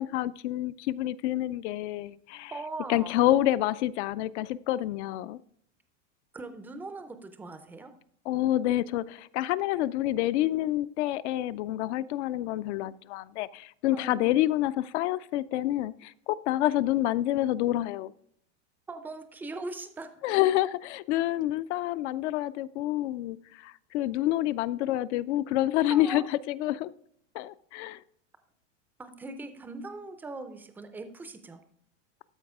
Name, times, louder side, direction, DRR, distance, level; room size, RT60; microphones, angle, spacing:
voice 1, 0.0-2.5 2.9-5.4 8.3-18.1 20.2-26.9 27.3-28.0, left 14 dB, 65° left, 0.5 m, -28 dB
voice 2, 2.5-3.2 6.3-7.9 13.9-14.3 18.9-20.1 25.9-26.3 29.0-31.6, right 3 dB, 5° right, 0.4 m, -40 dB
12.5 x 4.7 x 3.5 m
supercardioid pair, 135°, 38 cm